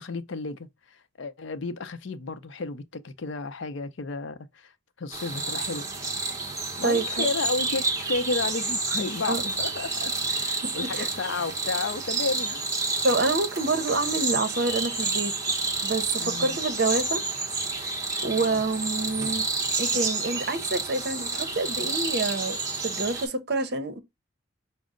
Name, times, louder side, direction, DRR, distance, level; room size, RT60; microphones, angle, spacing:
voice 1, 0.0-4.7 5.0-5.9 6.8-12.6 16.2-16.6 18.3-18.6, left 3 dB, 70° left, 0.5 m, -32 dB
sound 1, 5.1-23.3, right 3 dB, 15° right, 0.9 m, -29 dB
voice 2, 6.8-7.3 9.2-9.4 11.0-11.1 13.0-15.3 15.8-17.2 17.8-17.9 18.2-19.5 19.8-24.0, right 2 dB, 55° right, 0.7 m, -27 dB
5.2 x 2.0 x 3.6 m
head